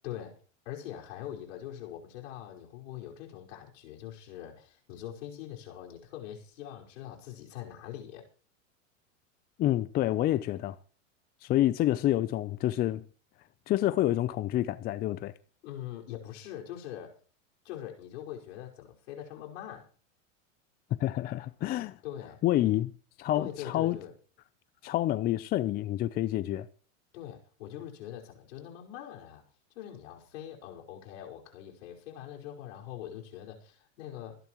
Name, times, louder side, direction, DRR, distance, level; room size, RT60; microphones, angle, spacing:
voice 1, 0.0-0.3 0.6-8.2 15.6-17.1 17.6-19.9 22.0-22.4 23.3-24.1 27.1-29.4 29.7-34.4, left 11 dB, 65° left, 5.1 m, -43 dB
voice 2, 9.6-10.8 11.4-13.0 13.7-15.3 21.0-22.0 22.4-22.9 23.2-24.0 24.8-26.7, left 14 dB, 25° left, 0.5 m, -28 dB
25.0 x 11.0 x 3.1 m
supercardioid pair, 130°, 40 cm